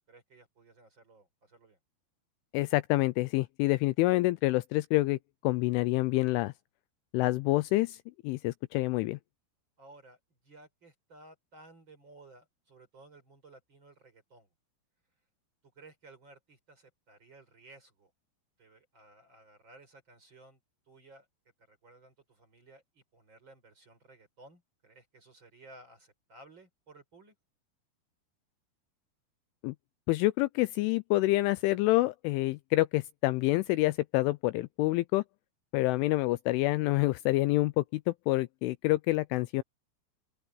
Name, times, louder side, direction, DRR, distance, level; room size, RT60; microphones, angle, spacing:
voice 1, 0.1-1.8 9.8-14.5 15.7-18.1 18.6-20.6 20.9-21.3 21.6-27.3, right 2 dB, 25° right, 4.6 m, -56 dB
voice 2, 2.5-6.5 7.1-8.0 8.2-9.2 29.6-29.8 30.1-35.2 35.7-39.6, left 19 dB, 85° left, 2.9 m, -27 dB
open air
omnidirectional pair, 5.9 m